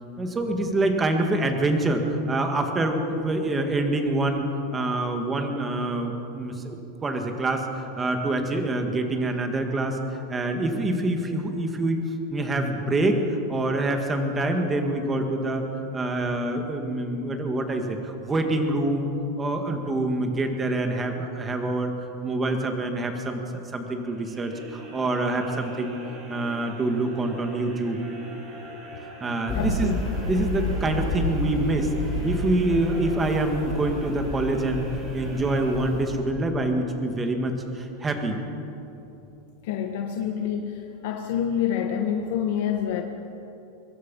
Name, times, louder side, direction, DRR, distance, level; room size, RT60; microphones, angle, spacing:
voice 1, 0.2-2.0 2.3-4.4 4.7-10.0 10.3-12.0 12.3-13.2 13.5-15.6 15.9-19.1 19.4-21.9 22.2-23.4 23.7-26.0 26.3-28.0 29.2-30.0 30.3-31.9 32.2-34.9 35.1-38.4, right 2 dB, 15° right, 4 dB, 1.9 m, -26 dB
sound 1, 24.1-36.3, right 2 dB, 30° right, 6.9 m, -42 dB
voice 2, 29.5-30.0 39.6-43.0, left 9 dB, 60° left, 4 dB, 1.4 m, -27 dB
sound 2, 29.5-36.2, left 2 dB, 20° left, 5.3 m, -30 dB
23.5 x 21.5 x 5.5 m, 3.0 s
supercardioid pair, 170°, 0 cm